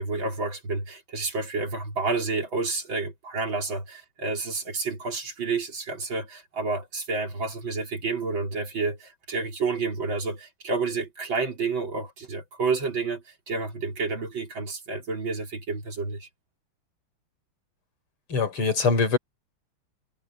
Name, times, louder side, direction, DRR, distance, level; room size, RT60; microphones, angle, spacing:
voice 1, 0.0-16.3, right 4 dB, 60° right, 4.6 m, -30 dB
voice 2, 18.3-19.2, left 4 dB, 80° left, 5.1 m, -23 dB
omnidirectional pair, 2.4 m